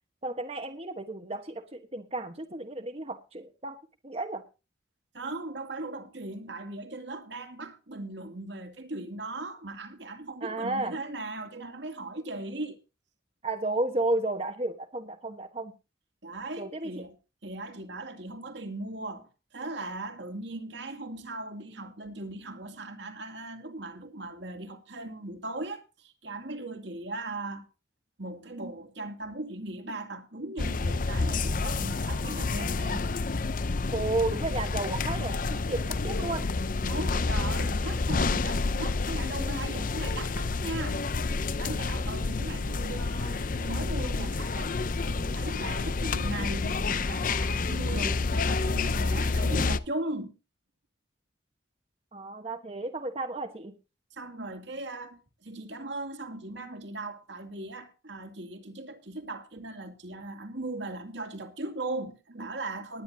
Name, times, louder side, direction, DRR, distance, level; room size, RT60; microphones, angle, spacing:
voice 1, 0.2-3.7 4.0-4.4 10.4-10.9 13.4-15.7 16.6-16.9 33.9-36.4 52.1-53.7, right 2 dB, 30° right, 1.2 m, -32 dB
voice 2, 5.1-12.8 16.2-17.2 17.4-27.7 28.2-33.1 36.8-41.0 41.6-50.3 54.1-63.0, right 2 dB, 70° right, 2.4 m, -38 dB
sound 1, 30.6-49.8, left 3 dB, 45° left, 0.6 m, -29 dB
20.0 x 10.5 x 2.7 m
head